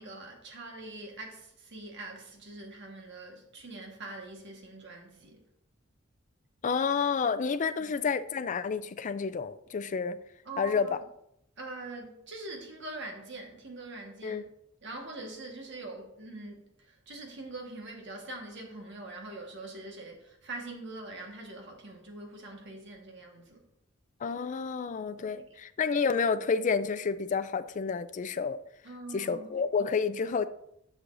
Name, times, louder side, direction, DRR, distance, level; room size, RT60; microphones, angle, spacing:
voice 1, 0.0-5.4 7.8-7.9 10.4-11.0 11.6-14.4 14.8-23.6 25.1-25.4 28.8-29.6, right 2 dB, 60° right, 1.5 m, -43 dB
voice 2, 6.6-10.2 10.6-11.0 14.2-14.4 24.2-28.6 29.1-30.5, left 5 dB, 40° left, 0.4 m, -30 dB
9.4 x 6.2 x 2.6 m
head